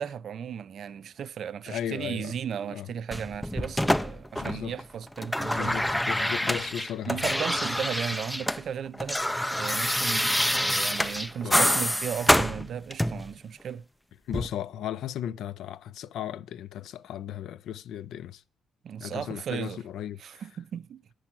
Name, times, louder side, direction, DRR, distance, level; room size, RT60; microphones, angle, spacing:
voice 1, 0.0-5.8 7.1-9.2 9.5-13.9 18.8-19.8 20.2-21.0, right 8 dB, 60° right, 0.4 m, -35 dB
voice 2, 1.7-2.3 2.7-2.9 4.4-4.8 5.5-7.3 11.4-11.7 14.3-18.4 19.0-20.5, left 10 dB, 80° left, 0.4 m, -36 dB
sound 1, 3.1-4.8 5.1-8.6 8.9-13.3 14.3-14.5, left 1 dB, 5° left, 0.4 m, -27 dB
9.7 x 4.6 x 6.0 m
cardioid pair, 90°, 0 cm